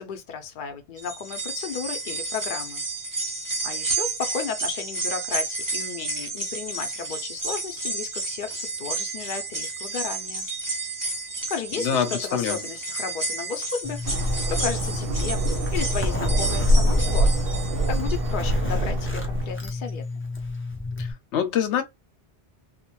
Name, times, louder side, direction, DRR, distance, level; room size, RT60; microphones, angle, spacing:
voice 1, 0.0-2.8 3.6-10.5 11.5-14.2 14.5-15.4 15.7-17.5 17.9-20.0, left 6 dB, 55° left, 0.7 m, -34 dB
sound 1, 1.0-18.3 18.7-18.8 19.9-20.0, right 3 dB, 20° right, 0.7 m, -31 dB
voice 2, 11.7-12.6 21.0-21.8, left 8 dB, 90° left, 1.0 m, -25 dB
Zipper (clothing), 13.8-21.1, left 2 dB, 20° left, 0.3 m, -31 dB
sound 2, 14.0-19.6, equal, 65° right, 0.7 m, -24 dB
2.4 x 2.2 x 3.0 m
omnidirectional pair, 1.1 m